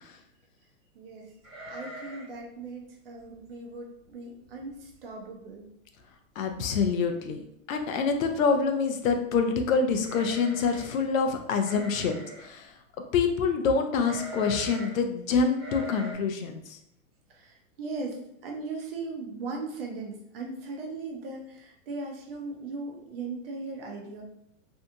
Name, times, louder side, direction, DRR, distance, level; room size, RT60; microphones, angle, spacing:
voice 1, 0.9-1.4 1.7-5.7 17.3-24.2, right 3 dB, 45° right, 1 dB, 0.6 m, -38 dB
sound 1, 1.4-2.4 2.7-2.8 3.2-3.5 4.0-4.1 4.4-4.9 5.3-5.4 6.5-6.6 6.9-7.3 10.0-11.0 11.6-12.5 14.0-15.0 15.5-16.1, right 1 dB, 10° right, 1.1 m, -42 dB
voice 2, 6.4-7.4 7.7-12.7 13.1-16.8, left 5 dB, 70° left, 6 dB, 0.6 m, -26 dB
2.7 x 2.2 x 2.6 m, 0.74 s
hypercardioid pair, 160°, 41 cm